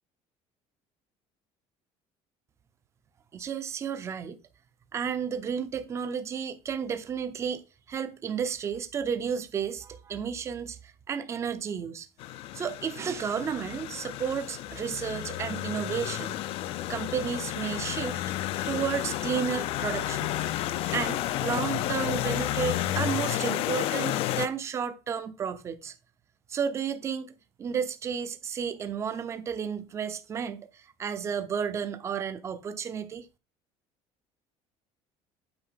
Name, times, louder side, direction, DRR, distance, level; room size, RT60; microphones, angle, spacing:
voice 1, 3.3-4.4 4.9-7.6 7.9-12.1 12.5-16.4 16.9-18.2 18.7-25.9 26.5-27.3 27.6-33.3, right 7 dB, 25° right, 0.7 m, -32 dB
sound 1, 12.2-24.5, left 13 dB, 55° left, 0.6 m, -31 dB
8.8 x 4.5 x 5.7 m
cardioid pair, 180°, 12 cm